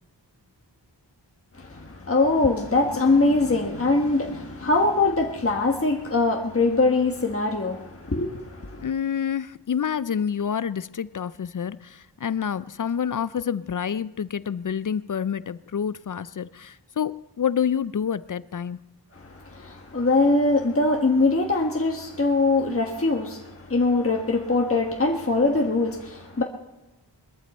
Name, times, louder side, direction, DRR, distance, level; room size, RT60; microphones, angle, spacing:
voice 1, 1.5-8.9 19.1-26.4, left 3 dB, 30° left, 1.4 m, -22 dB
voice 2, 8.8-18.8, left 8 dB, 50° left, 0.4 m, -28 dB
21.5 x 14.0 x 4.3 m
wide cardioid pair, 60°, 43 cm